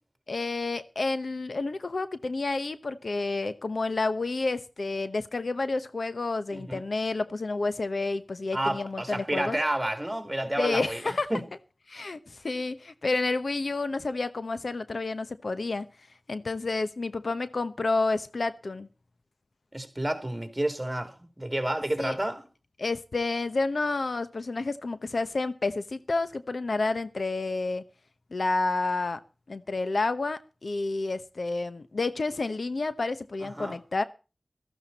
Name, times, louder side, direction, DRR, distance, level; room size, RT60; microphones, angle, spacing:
voice 1, 0.3-9.6 10.6-11.3 11.9-15.9 16.3-18.9 22.0-22.2 22.8-27.8 28.3-29.2 29.5-34.0, left 3 dB, 85° left, 0.9 m, -30 dB
voice 2, 6.5-6.8 8.5-11.0 11.3-11.4 19.7-22.4 33.6-33.8, right 1 dB, 20° right, 3.1 m, -30 dB
15.0 x 14.0 x 4.1 m
wide cardioid pair, 50°, 0 cm